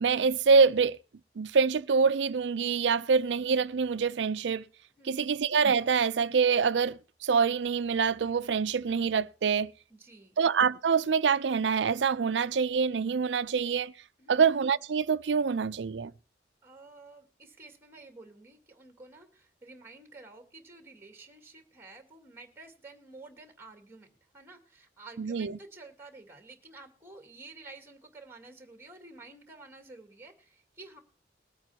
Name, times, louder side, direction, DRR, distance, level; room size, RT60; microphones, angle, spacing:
voice 1, 0.0-1.0 1.4-4.6 5.1-9.7 10.4-13.9 14.3-16.1 25.2-25.6, right 5 dB, 85° right, 0.5 m, -25 dB
voice 2, 5.0-5.3 9.9-10.4 14.2-14.4 16.6-24.1 24.3-31.0, right 3 dB, 15° right, 2.2 m, -51 dB
21.5 x 8.9 x 2.8 m
head